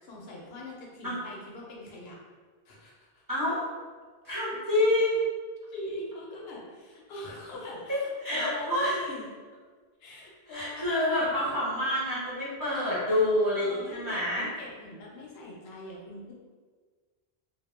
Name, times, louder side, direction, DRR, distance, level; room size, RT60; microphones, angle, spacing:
voice 1, 0.0-2.1 2.7-3.1 5.7-9.2 10.0-11.5 13.5-16.3, left 2 dB, 75° left, -3 dB, 0.8 m, -42 dB
voice 2, 3.3-3.6 4.2-5.2 8.2-9.0 10.5-14.5, left 1 dB, 20° right, -11 dB, 0.7 m, -27 dB
2.2 x 2.1 x 3.0 m, 1.5 s
omnidirectional pair, 1.0 m